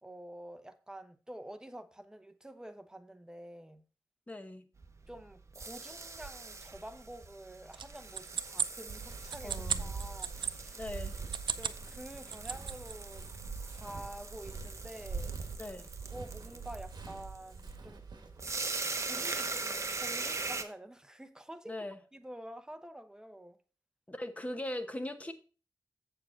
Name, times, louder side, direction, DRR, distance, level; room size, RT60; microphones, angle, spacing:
voice 1, 0.0-3.8 5.1-10.8 11.6-13.3 13.7-15.3 16.1-18.1 19.0-21.9 22.1-23.6, right 1 dB, 10° right, 0.8 m, -48 dB
voice 2, 4.3-4.6 9.4-9.9 10.7-11.1 15.6-15.9 21.7-22.0 24.1-25.3, left 1 dB, 15° left, 1.0 m, -40 dB
sound 1, 4.8-20.6, right 3 dB, 35° right, 0.9 m, -41 dB
sound 2, 7.7-10.5 11.2-11.8 12.1-12.9, right 7 dB, 80° right, 0.5 m, -36 dB
Walk footsteps, 8.9-18.5, right 4 dB, 60° right, 1.5 m, -44 dB
7.5 x 7.0 x 3.9 m
wide cardioid pair, 90°, 8 cm